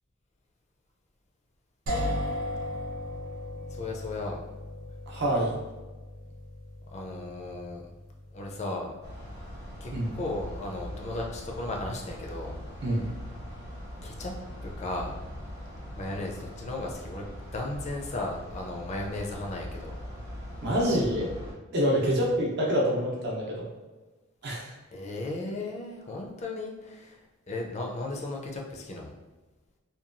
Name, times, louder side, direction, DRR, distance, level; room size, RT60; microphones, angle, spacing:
sound 1, 1.9-11.6, left 1 dB, 85° right, 0.8 m, -38 dB
voice 1, 3.7-4.4 6.9-7.8 8.3-8.9 9.8-12.9 14.0-14.3 14.6-15.2 16.0-17.2 17.5-20.0 22.1-22.2 24.9-29.1, left 2 dB, 30° left, 0 dB, 0.4 m, -36 dB
voice 2, 5.1-5.6 9.9-10.1 12.8-13.1 20.6-21.3 21.7-23.7 24.4-24.7, equal, 50° right, -2 dB, 0.6 m, -26 dB
sound 2, 9.0-21.5, equal, 15° right, 0.6 m, -41 dB
2.8 x 2.2 x 2.5 m, 1.2 s
head